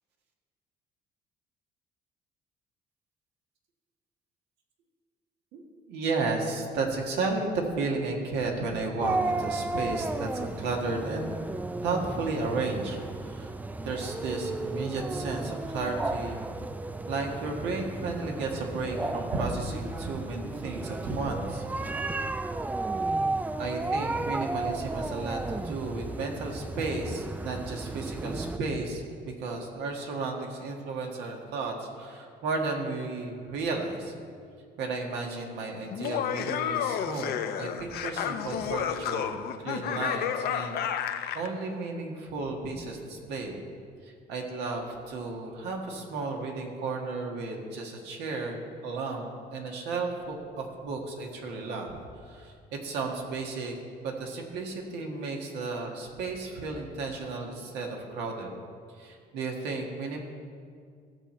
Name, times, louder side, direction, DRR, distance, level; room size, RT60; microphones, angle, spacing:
voice 1, 5.5-11.3 11.8-13.5 13.8-16.4 17.1-21.6 23.6-34.1 34.8-39.4 39.6-43.6 44.0-48.6 48.8-52.0 52.2-53.8 54.0-58.5 59.0-60.2, right 3 dB, 90° right, 1 dB, 1.7 m, -33 dB
sound 1, 9.0-28.6, right 2 dB, 10° right, 0.3 m, -33 dB
Laughter, 35.9-41.5, left 9 dB, 65° left, 0.6 m, -31 dB
15.5 x 6.0 x 4.4 m, 2.2 s
cardioid pair, 110°, 17 cm